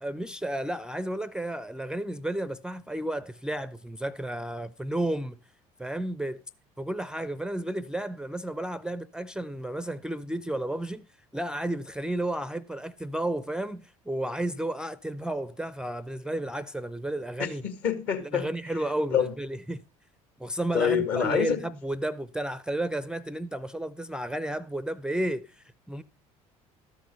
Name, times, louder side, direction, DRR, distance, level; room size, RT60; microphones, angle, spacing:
voice 1, 0.0-5.4 5.8-6.4 6.8-11.0 11.3-17.6 18.2-19.8 20.4-26.0, right 1 dB, 5° right, 0.4 m, -32 dB
voice 2, 17.4-18.5 19.1-19.3 20.7-21.6, left 7 dB, 60° left, 1.8 m, -26 dB
13.0 x 6.1 x 5.3 m
figure-of-eight pair, 60°, 18 cm